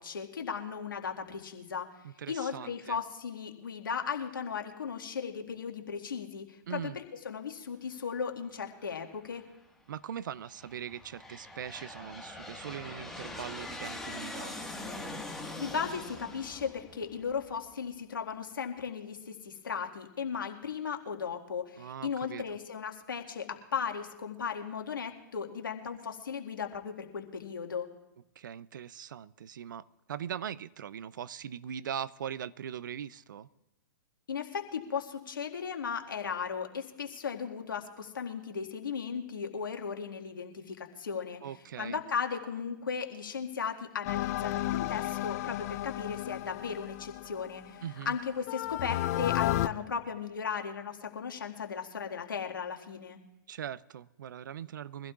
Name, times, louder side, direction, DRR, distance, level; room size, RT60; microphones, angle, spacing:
voice 1, 0.0-1.9 2.3-9.4 15.6-27.9 34.3-41.4 41.8-53.2, left 6 dB, 75° left, 1.9 m, -36 dB
voice 2, 2.0-3.0 6.7-7.0 9.9-14.7 21.7-22.6 28.4-33.5 41.4-42.0 47.8-48.2 53.5-55.1, right 9 dB, 70° right, 0.5 m, -41 dB
Aircraft, 8.9-9.4 10.2-17.7, left 2 dB, 5° left, 1.6 m, -43 dB
sound 1, 44.0-47.9 48.5-49.7, left 15 dB, 50° left, 0.5 m, -33 dB
23.5 x 15.5 x 2.4 m
hypercardioid pair, 115°, 11 cm